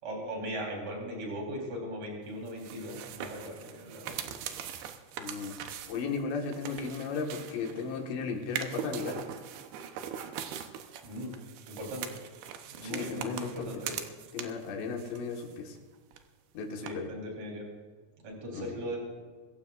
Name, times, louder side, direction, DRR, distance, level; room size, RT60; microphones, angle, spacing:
voice 1, 0.0-4.2 11.0-11.3 11.7-12.2 12.7-14.0 16.8-17.7 18.2-19.0, equal, 40° right, -1 dB, 4.7 m, -38 dB
sound 1, 2.5-8.0 8.4-14.7 15.0-16.2 16.9-17.0, right 9 dB, 75° right, 2.6 m, -41 dB
voice 2, 5.2-5.6 5.9-9.2 12.8-13.7 14.3-15.8 16.6-17.1 18.5-18.7, left 5 dB, 75° left, 2 dB, 3.8 m, -35 dB
24.0 x 15.5 x 2.5 m, 1.5 s
omnidirectional pair, 5.2 m